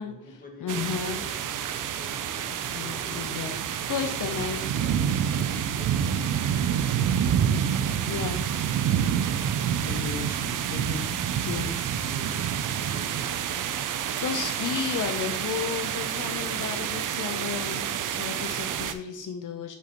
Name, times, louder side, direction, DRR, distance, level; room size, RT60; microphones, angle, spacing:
voice 1, 0.0-7.7 8.2-9.7 11.6-13.4, left 2 dB, 25° left, 1 dB, 1.4 m, -49 dB
voice 2, 0.6-1.2 2.5-3.6 3.9-4.6 8.1-8.4 9.8-11.7 14.2-19.8, left 7 dB, 80° left, 5 dB, 0.6 m, -33 dB
sound 1, 0.7-18.9, right 9 dB, 90° right, 0.5 m, -28 dB
6.7 x 5.0 x 2.9 m, 0.73 s
wide cardioid pair, 130°, 31 cm